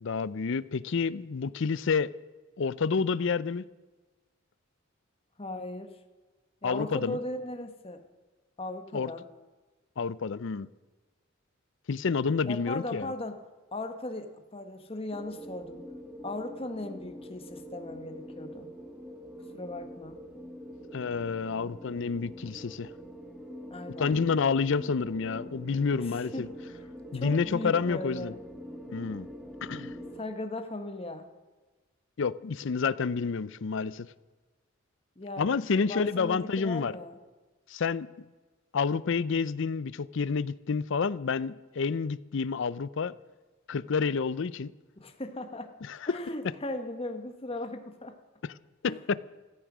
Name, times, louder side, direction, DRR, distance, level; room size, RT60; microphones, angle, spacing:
voice 1, 0.0-2.1 2.6-3.6 6.6-7.2 8.9-9.1 10.0-10.7 11.9-13.1 20.9-22.9 24.0-26.5 27.1-28.3 28.9-29.3 29.6-29.9 32.2-34.1 35.4-36.9 37.7-38.1 38.7-43.1 43.7-44.7 45.9-46.0 48.4-48.5 48.8-49.2, left 5 dB, 60° left, 0.5 m, -29 dB
voice 2, 5.4-6.0 6.6-8.0 8.6-9.2 12.4-13.4 13.7-15.8 16.2-18.7 19.5-20.2 23.7-24.1 26.0-26.5 27.1-28.4 30.1-31.3 35.2-35.5 35.8-37.1 45.0-45.7 46.1-48.2 48.8-49.0, left 2 dB, 30° left, 1.2 m, -37 dB
sound 1, 15.1-30.2, equal, ahead, 1.5 m, -45 dB
15.5 x 14.0 x 6.1 m
head